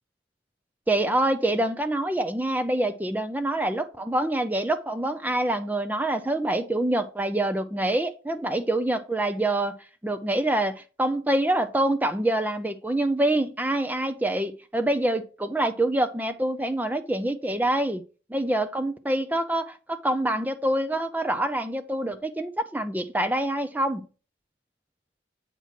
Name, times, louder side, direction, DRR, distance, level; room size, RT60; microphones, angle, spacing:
voice 1, 0.9-9.7 10.0-18.0 18.3-24.0, right 1 dB, 10° right, 0.4 m, -26 dB
8.1 x 3.0 x 5.7 m
head